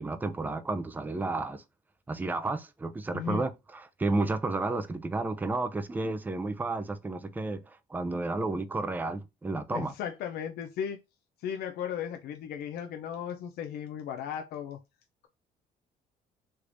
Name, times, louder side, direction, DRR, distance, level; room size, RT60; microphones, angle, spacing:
voice 1, 0.0-1.6 2.1-9.9, right 2 dB, 10° right, 0.4 m, -32 dB
voice 2, 3.1-3.4 9.7-11.0 11.4-14.8, left 8 dB, 70° left, 0.5 m, -36 dB
3.3 x 3.2 x 2.5 m
cardioid pair, 110°, 17 cm